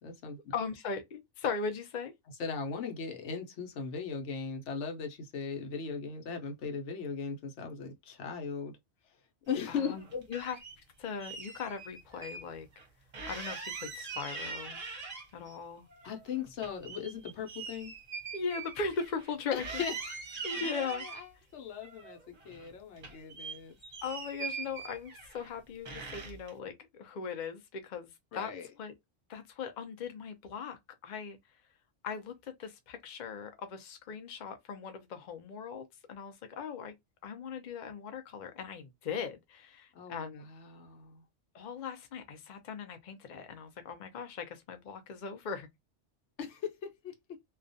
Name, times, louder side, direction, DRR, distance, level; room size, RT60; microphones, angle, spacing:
voice 1, 0.0-0.5 2.4-8.7 9.5-10.2 16.0-17.9 19.5-19.9 20.3-21.3 21.5-23.8 28.3-28.7 39.9-41.2 46.4-47.1, left 6 dB, 75° left, 1.0 m, -38 dB
voice 2, 0.5-2.1 9.7-10.0 10.3-10.6 11.0-12.7 13.3-14.8 15.3-15.9 18.3-19.7 20.4-21.0 24.0-28.5 28.8-28.9 29.3-31.4 32.0-36.9 37.2-40.4 41.5-45.7, left 5 dB, 55° left, 0.5 m, -39 dB
sound 1, 9.7-10.8 11.2-12.4 12.7-12.8 13.1-15.5 15.9-19.3 19.6-21.2 21.8-22.7 23.0-25.5 25.9-26.5, right 4 dB, 40° right, 0.7 m, -42 dB
2.3 x 2.2 x 2.6 m
omnidirectional pair, 1.2 m